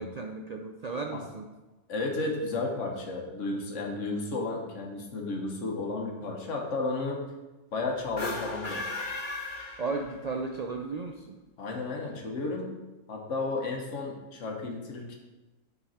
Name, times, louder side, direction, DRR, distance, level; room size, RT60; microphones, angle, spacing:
voice 1, 0.0-1.5 9.8-11.4, right 4 dB, 80° right, 2 dB, 0.3 m, -35 dB
voice 2, 1.9-7.2 7.7-8.8 11.6-12.7 13.1-15.2, left 3 dB, 70° left, 1 dB, 1.4 m, -33 dB
sound 1, 8.1-10.4, left 2 dB, 40° left, 1.1 m, -36 dB
9.1 x 3.9 x 4.2 m, 1.1 s
omnidirectional pair, 1.3 m